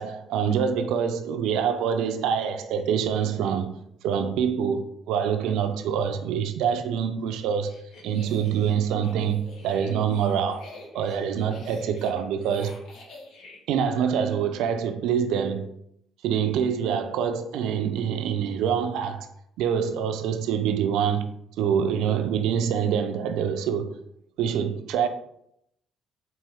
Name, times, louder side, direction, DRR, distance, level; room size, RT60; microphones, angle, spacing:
voice 1, 0.0-3.8 4.0-7.8 8.0-10.6 10.9-12.8 13.7-15.8 16.2-19.3 19.6-21.3 21.6-23.9 24.4-25.1, right 7 dB, 80° right, 0.4 m, -25 dB
sound 1, 7.4-13.6, left 2 dB, 70° left, 1.1 m, -47 dB
4.3 x 2.6 x 3.5 m
supercardioid pair, 70°, 0 cm